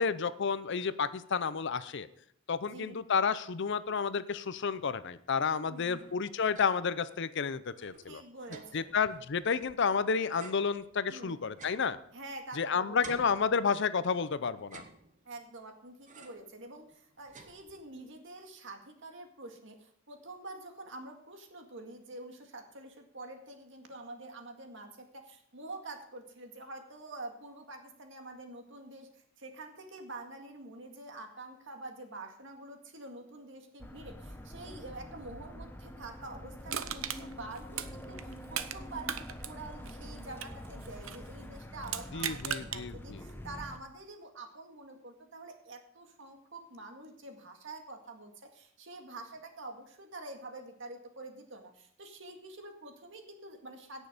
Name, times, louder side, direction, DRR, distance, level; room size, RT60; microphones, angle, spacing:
voice 1, 0.0-2.1 2.5-8.2 8.7-12.0 12.6-14.8 42.1-43.2, left 5 dB, 60° left, 15 dB, 0.6 m, -31 dB
voice 2, 5.4-6.1 8.1-8.9 11.1-11.4 12.1-13.3 15.3-54.1, right 2 dB, 65° right, 4 dB, 1.9 m, -47 dB
sound 1, 5.7-7.0 7.3-7.4 7.7-9.9 10.4-12.6 13.0-14.1 14.6-15.5 16.1-16.6 16.9-18.1, right 3 dB, 40° right, 1.2 m, -53 dB
sound 2, 33.8-43.8, left 1 dB, 10° left, 0.9 m, -46 dB
Crushing, 36.7-38.8 39.0-41.3 41.8-42.8 43.3-43.4, right 9 dB, 80° right, 0.8 m, -37 dB
17.0 x 6.3 x 5.1 m, 0.69 s
head